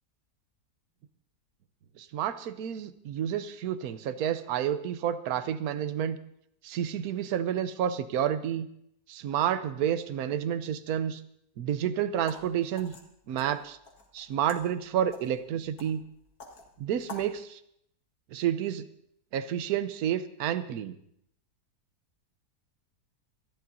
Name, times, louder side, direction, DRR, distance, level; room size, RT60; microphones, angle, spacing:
voice 1, 2.0-6.2 6.6-8.7 9.1-11.2 11.6-13.0 13.3-13.8 14.1-16.0 16.8-17.6 18.3-18.8 19.3-21.0, right 9 dB, 70° right, 12 dB, 1.2 m, -30 dB
sound 1, 12.1-17.3, left 2 dB, 65° left, 2.2 m, -49 dB
26.0 x 11.5 x 2.7 m, 0.73 s
omnidirectional pair, 1.7 m